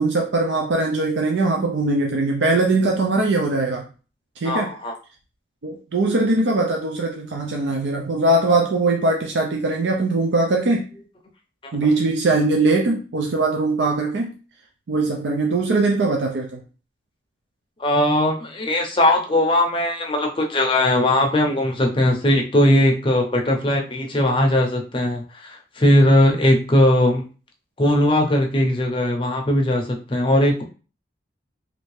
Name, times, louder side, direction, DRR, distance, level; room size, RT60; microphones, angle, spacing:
voice 1, 0.0-3.9 4.4-4.7 5.6-10.9 11.7-14.3 14.9-16.6, right 2 dB, 70° right, 1 dB, 0.5 m, -21 dB
voice 2, 4.4-4.9 17.8-27.2 27.8-30.6, left 1 dB, 25° left, 2 dB, 0.6 m, -19 dB
3.1 x 2.6 x 3.2 m, 0.36 s
head